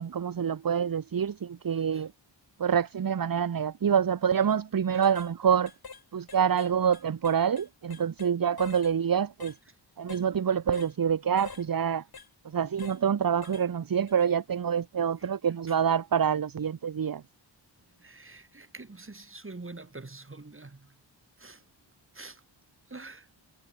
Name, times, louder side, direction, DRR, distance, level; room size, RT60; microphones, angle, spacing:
voice 1, 0.0-2.1 2.6-5.7 6.1-9.5 10.0-12.0 12.5-17.2, right 7 dB, 50° right, 1.0 m, -26 dB
voice 2, 1.8-2.1 4.9-5.0 15.2-15.3 15.7-15.8 18.0-21.0 21.4-21.6 22.1-22.4 22.9-23.3, right 3 dB, 25° right, 7.7 m, -46 dB
sound 1, 4.4-4.6 5.0-5.3 5.7-6.0 6.3-8.3 8.6-8.9 9.4-9.6 10.1-10.3 10.7-10.9 11.4-11.6 12.1-12.3 12.8-13.0 13.4-13.7 14.1-14.2, left 5 dB, 50° left, 5.1 m, -45 dB
wide cardioid pair, 125°, 46 cm